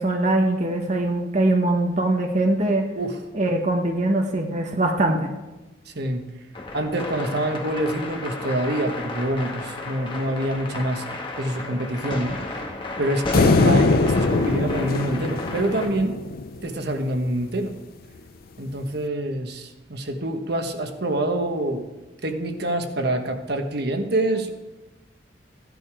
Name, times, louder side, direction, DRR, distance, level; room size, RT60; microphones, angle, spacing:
voice 1, 0.0-2.8 3.3-5.3, right 2 dB, 40° right, 2 dB, 1.1 m, -22 dB
voice 2, 5.9-6.2 6.7-11.0 11.4-12.7 13.0-16.2 16.6-17.7 18.6-21.9 22.2-24.5, right 1 dB, 60° right, 5 dB, 1.3 m, -26 dB
sound 1, 6.5-15.9, left 2 dB, 30° left, 1.9 m, -32 dB
sound 2, 13.3-16.7, left 3 dB, 50° left, 0.5 m, -21 dB
15.0 x 10.5 x 4.9 m, 1.1 s
head